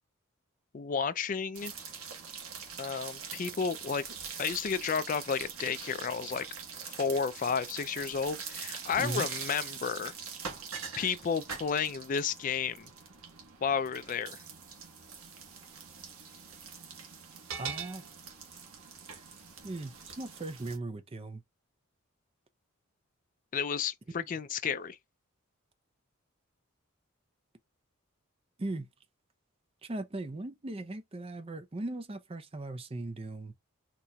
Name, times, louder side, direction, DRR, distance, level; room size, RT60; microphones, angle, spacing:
voice 1, 0.7-1.7 2.8-4.0 4.4-6.5 6.8-10.1 11.0-12.9 13.6-14.4 23.5-25.0, left 6 dB, 35° left, 0.3 m, -32 dB
sound 1, 1.5-20.8, right 6 dB, 80° right, 1.3 m, -43 dB
voice 2, 17.5-18.0 19.6-21.4 24.1-24.3 28.6-28.9 29.8-33.5, right 2 dB, 25° right, 0.5 m, -38 dB
4.2 x 2.9 x 2.2 m
head